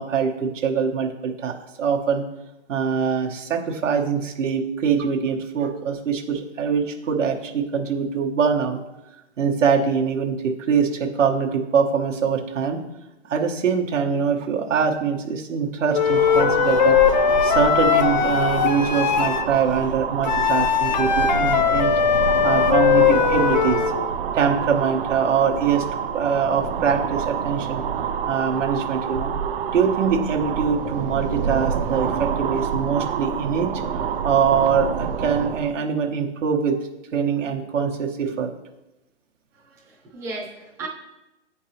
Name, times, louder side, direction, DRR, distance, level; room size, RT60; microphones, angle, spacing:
voice 1, 0.0-2.2 2.7-8.8 9.4-12.8 13.3-17.0 17.4-21.9 22.4-23.8 24.3-25.8 26.1-27.8 28.3-29.3 29.7-33.7 34.2-36.8 37.1-38.5, right 6 dB, 85° right, 1 dB, 1.2 m, -23 dB
Wind instrument woodwind instrument, 15.9-19.5 20.2-24.0, left 8 dB, 40° left, 0.4 m, -19 dB
sound 1, 15.9-35.7, right 7 dB, 50° right, 0.5 m, -27 dB
voice 2, 39.6-40.9, right 3 dB, 10° right, -6 dB, 0.7 m, -35 dB
8.7 x 4.5 x 2.9 m, 0.95 s
hypercardioid pair, 150°, 36 cm